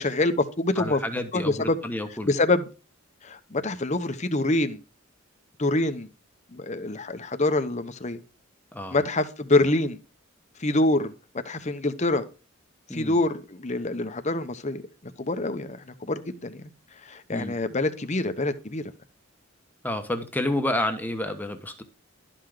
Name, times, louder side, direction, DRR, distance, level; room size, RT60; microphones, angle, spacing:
voice 1, 0.0-1.0 1.3-1.8 2.3-2.6 3.2-4.8 5.6-6.1 6.5-8.2 8.9-10.0 10.6-11.1 11.4-12.2 12.9-14.8 15.2-16.6 17.0-18.8, left 2 dB, 35° left, 0.9 m, -25 dB
voice 2, 0.8-2.4 8.7-9.0 12.9-13.2 17.3-17.6 19.8-21.8, left 1 dB, 10° left, 1.1 m, -30 dB
12.0 x 5.9 x 4.9 m
head